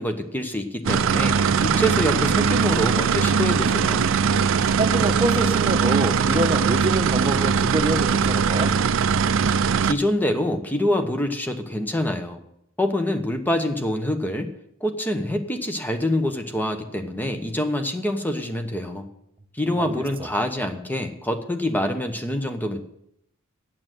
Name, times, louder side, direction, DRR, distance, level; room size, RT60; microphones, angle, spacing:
voice 1, 0.0-4.1 9.8-12.4 12.8-14.5 14.8-19.1 19.5-22.8, left 1 dB, 10° left, 6 dB, 0.9 m, -26 dB
sound 1, 0.8-9.9, right 6 dB, 65° right, 0.5 m, -21 dB
voice 2, 4.8-8.7 19.8-19.9, right 1 dB, 25° right, 6 dB, 1.0 m, -25 dB
8.8 x 7.6 x 9.1 m, 0.78 s
head